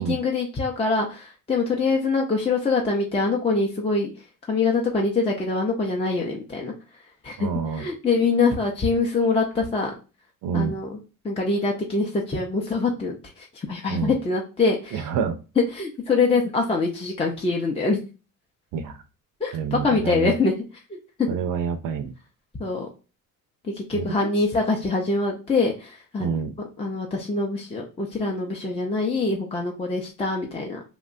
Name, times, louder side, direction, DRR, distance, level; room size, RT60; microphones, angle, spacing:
voice 1, 0.0-4.1 4.5-6.7 7.2-9.9 10.5-11.0 11.2-15.1 15.7-18.0 19.4-20.5 21.2-21.3 22.6-22.9 23.6-26.3 26.8-30.8, left 3 dB, 15° left, 0 dB, 0.5 m, -24 dB
voice 2, 7.4-7.8 10.4-10.8 13.9-14.2 14.9-15.4 18.7-19.0 19.5-20.3 21.3-22.1 23.9-24.3 26.2-26.5, right 6 dB, 65° right, 8 dB, 0.5 m, -27 dB
2.8 x 2.2 x 2.5 m, 0.32 s
cardioid pair, 90°, 35 cm